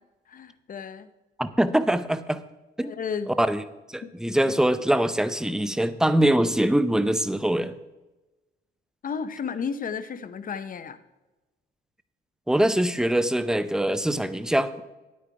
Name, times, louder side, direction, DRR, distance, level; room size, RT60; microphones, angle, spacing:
voice 1, 0.3-1.1 2.8-3.3 4.0-4.5 9.0-11.0, left 6 dB, 45° left, 13 dB, 0.8 m, -33 dB
voice 2, 1.4-2.4 2.8-2.9 3.4-3.6 3.9-7.7 12.5-14.8, right 1 dB, 5° right, 13 dB, 0.6 m, -23 dB
9.8 x 8.7 x 4.7 m, 1.1 s
cardioid pair, 90°, 20 cm